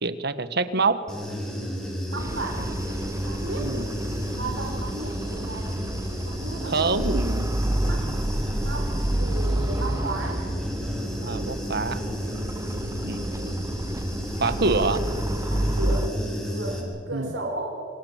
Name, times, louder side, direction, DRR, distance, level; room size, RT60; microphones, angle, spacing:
voice 1, 0.0-1.0 3.6-3.9 6.6-7.5 11.2-12.0 13.0-13.5 14.4-15.0 17.1-17.3, right 3 dB, 60° right, 11 dB, 1.6 m, -26 dB
Human voice / Buzz, 1.1-16.8, equal, 5° left, 6.3 m, -32 dB
voice 2, 2.1-2.7 3.2-3.7 4.4-5.7 6.2-7.0 7.6-8.1 8.6-8.9 9.2-10.5 12.6-12.9 15.5-16.1 16.5-17.8, right 2 dB, 80° right, 1 dB, 4.9 m, -34 dB
sound 1, 2.2-16.1, right 1 dB, 15° right, 0.7 m, -30 dB
28.5 x 25.5 x 7.5 m, 2.2 s
head